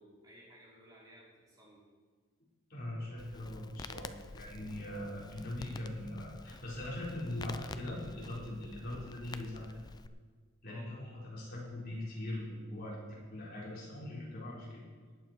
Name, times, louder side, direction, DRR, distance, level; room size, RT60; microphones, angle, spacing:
voice 1, 0.0-1.8 10.6-10.9, equal, 15° right, -6 dB, 3.7 m, -57 dB
voice 2, 2.7-9.8 10.6-14.8, left 1 dB, 45° left, -6 dB, 4.3 m, -41 dB
Crackle, 3.2-10.1, left 3 dB, 20° left, 0.3 m, -49 dB
19.0 x 8.8 x 4.5 m, 1.5 s
head